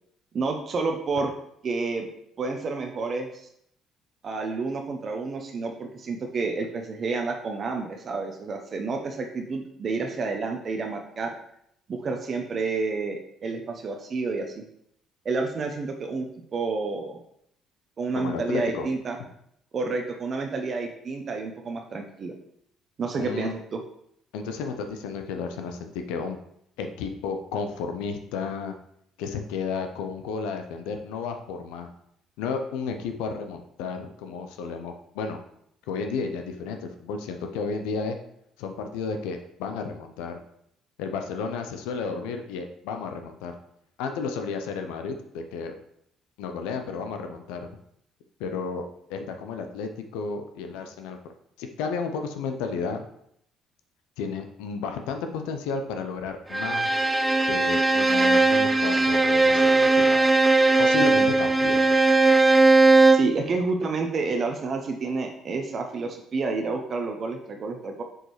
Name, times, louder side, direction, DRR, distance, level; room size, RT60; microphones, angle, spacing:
voice 1, 0.3-1.3 1.6-2.1 2.4-3.5 4.2-11.3 11.9-14.6 15.2-17.2 18.0-19.2 19.7-22.3 23.0-23.8 63.1-68.0, right 3 dB, 45° right, 3 dB, 0.7 m, -29 dB
voice 2, 18.1-18.9 23.2-23.5 24.3-26.4 26.8-28.7 29.2-31.9 32.4-35.4 35.9-38.2 38.6-40.4 41.0-43.5 44.0-45.7 46.4-47.7 48.4-48.8 49.1-51.2 51.6-53.1 54.2-56.9 57.5-60.3 60.8-62.0, left 5 dB, 75° left, 5 dB, 0.6 m, -32 dB
Bowed string instrument, 56.5-63.4, right 3 dB, 15° right, 0.5 m, -19 dB
6.2 x 5.0 x 3.1 m, 0.72 s
hypercardioid pair, 55°, 0 cm